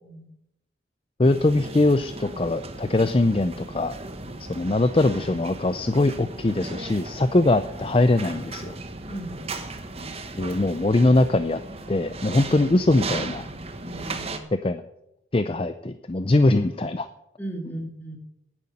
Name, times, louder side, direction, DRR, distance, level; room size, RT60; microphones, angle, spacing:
voice 1, 0.0-0.3 9.0-9.4 13.8-14.5 17.4-18.2, right 1 dB, 10° left, 2 dB, 2.2 m, -36 dB
voice 2, 1.2-3.9 4.4-8.7 10.3-11.6 11.9-13.5 14.6-14.8 15.3-17.1, left 2 dB, 30° left, 11 dB, 0.5 m, -22 dB
sound 1, 1.2-14.4, right 2 dB, 30° right, 1.2 m, -36 dB
11.0 x 9.6 x 8.6 m, 0.83 s
head